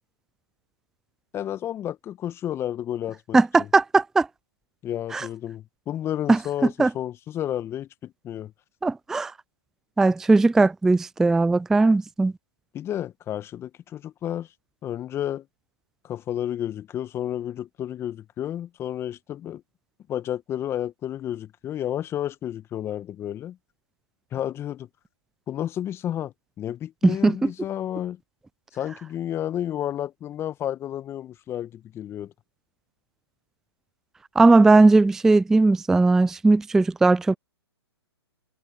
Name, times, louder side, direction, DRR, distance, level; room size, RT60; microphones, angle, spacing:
voice 1, 1.3-3.7 4.8-8.5 12.7-14.5 14.8-15.5 16.0-19.6 20.1-23.6 24.3-24.9 25.5-28.2 28.7-32.3, left 11 dB, 20° left, 1.8 m, -31 dB
voice 2, 3.3-4.3 5.1-5.3 6.3-6.4 6.8-6.9 8.8-9.3 10.0-12.3 27.0-27.5 34.4-37.4, right 3 dB, 5° right, 0.4 m, -18 dB
figure-of-eight pair, 130°, 14 cm